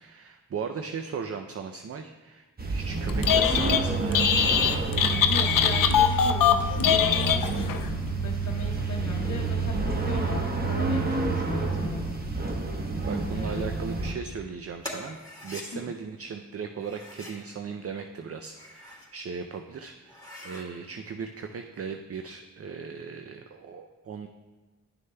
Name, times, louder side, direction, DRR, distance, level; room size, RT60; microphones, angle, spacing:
voice 1, 0.0-4.7 12.5-12.6 13.0-24.3, right 6 dB, 45° right, 6 dB, 0.5 m, -38 dB
sound 1, 2.6-14.1, right 3 dB, 30° right, 1.1 m, -29 dB
Telephone, 3.1-3.8 4.1-7.8, left 8 dB, 85° left, 0.5 m, -22 dB
voice 2, 5.3-12.1 13.3-13.7 15.7-15.9, left 3 dB, 55° left, -1 dB, 0.9 m, -37 dB
sound 2, 14.8-15.7 16.8-17.4 18.3-19.1 19.5-19.6 20.0-20.7, left 1 dB, 10° left, 2.1 m, -42 dB
11.0 x 6.4 x 2.2 m, 1.3 s
cardioid pair, 50°, 32 cm